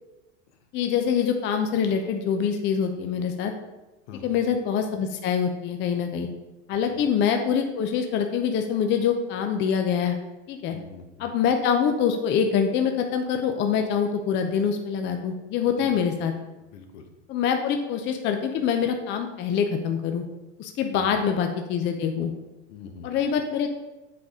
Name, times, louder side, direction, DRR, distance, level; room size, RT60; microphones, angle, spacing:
voice 1, 0.7-3.5 4.2-6.3 6.7-10.2 10.5-10.8 11.2-16.3 17.3-20.2 20.6-22.3 23.0-23.7, left 7 dB, 30° left, 5 dB, 0.5 m, -25 dB
voice 2, 4.1-4.4 6.9-7.0 10.7-11.3 15.8-15.9 16.6-17.1 20.9-21.2 22.7-23.2, left 5 dB, 65° left, 4 dB, 1.1 m, -44 dB
7.6 x 4.0 x 3.6 m, 1.1 s
hypercardioid pair, 115°, 36 cm